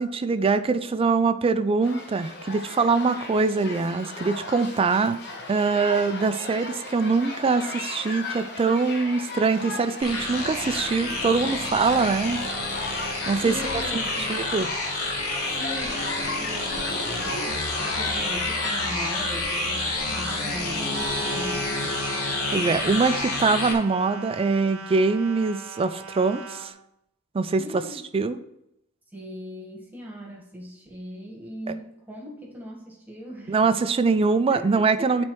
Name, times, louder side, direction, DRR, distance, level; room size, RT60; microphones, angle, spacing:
voice 1, 0.0-5.2 5.5-12.4 13.3-13.5 14.3-14.7 22.5-26.7 27.3-27.8 28.1-28.4 33.5-35.2, right 4 dB, 25° right, 11 dB, 0.3 m, -23 dB
sound 1, 1.8-19.3, left 3 dB, 50° left, 1.0 m, -36 dB
sound 2, 10.0-23.7, left 2 dB, 90° left, 1.3 m, -29 dB
voice 2, 13.4-14.4 15.6-22.1 27.6-28.0 29.1-33.7 34.5-35.2, equal, 10° right, -2 dB, 1.4 m, -39 dB
sound 3, 20.9-26.7, right 4 dB, 65° right, 0.7 m, -39 dB
10.5 x 4.2 x 3.1 m, 0.83 s
head